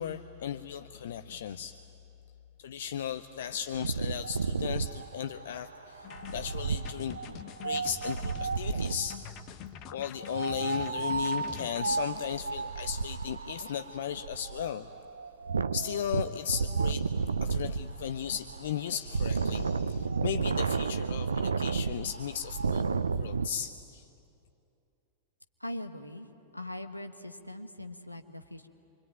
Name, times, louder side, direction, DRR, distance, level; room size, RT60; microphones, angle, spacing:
voice 1, 0.0-1.8 2.6-7.4 7.6-9.2 9.9-14.9 15.7-17.0 17.4-22.8 23.2-24.0, left 9 dB, 60° left, 9 dB, 0.7 m, -36 dB
Wind, 3.7-9.2 10.2-23.5, right 5 dB, 75° right, 0.6 m, -32 dB
sound 1, 6.0-11.8, left 7 dB, 40° left, 1.2 m, -45 dB
voice 2, 25.6-26.3 26.5-28.7, left 1 dB, 85° left, 6 dB, 1.4 m, -41 dB
26.5 x 24.0 x 9.1 m, 2.7 s
figure-of-eight pair, 90°, 0 cm